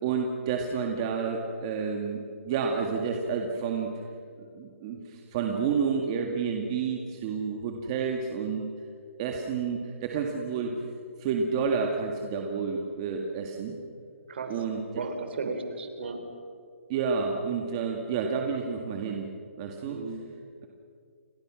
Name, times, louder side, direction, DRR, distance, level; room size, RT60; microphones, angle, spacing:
voice 1, 0.0-2.2 2.5-3.9 4.4-8.7 9.2-10.7 11.2-13.7 14.5-14.8 16.9-19.3 19.6-20.0, right 5 dB, 25° right, 2 dB, 2.0 m, -30 dB
voice 2, 14.9-16.2 19.8-20.2, right 4 dB, 50° right, 7 dB, 4.1 m, -35 dB
30.0 x 23.0 x 6.3 m, 2.3 s
hypercardioid pair, 170°, 7 cm